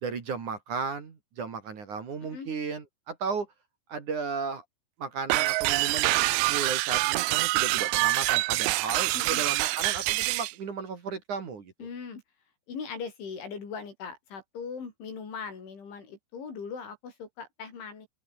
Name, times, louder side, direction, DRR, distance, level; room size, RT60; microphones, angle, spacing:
voice 1, 0.0-3.5 3.9-4.6 5.0-11.7, right 5 dB, 45° right, 3.8 m, -35 dB
sound 1, 5.3-10.5, right 24 dB, 90° right, 3.0 m, -26 dB
voice 2, 11.8-12.2 12.7-18.1, left 5 dB, 75° left, 8.5 m, -39 dB
omnidirectional pair, 5.4 m